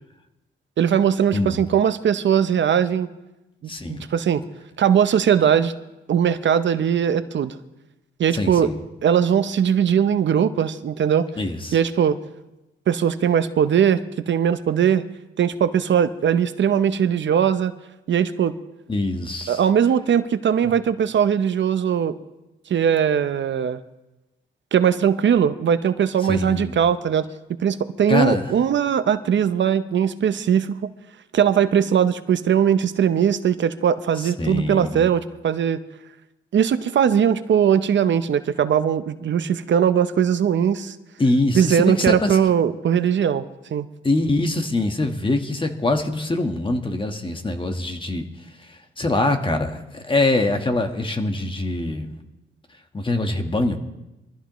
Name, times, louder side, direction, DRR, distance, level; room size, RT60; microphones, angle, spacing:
voice 1, 0.8-3.1 3.6-4.4 4.8-5.7 6.1-7.6 8.2-8.7 9.0-11.3 11.7-12.2 12.9-15.0 15.4-17.7 18.1-18.5 19.5-22.1 22.7-23.8 24.7-27.2 27.6-30.8 31.3-35.8 36.5-41.0 41.5-43.5 43.7-43.9, right 8 dB, 65° right, 12 dB, 0.7 m, -20 dB
voice 2, 3.7-4.0 8.3-8.8 11.4-11.8 18.9-19.6 26.2-26.7 28.1-28.4 34.4-35.1 41.2-42.4 44.0-48.2 48.7-52.2 52.9-53.8, left 2 dB, 25° left, 5 dB, 1.4 m, -23 dB
23.0 x 14.5 x 3.1 m, 1.0 s
cardioid pair, 80°, 21 cm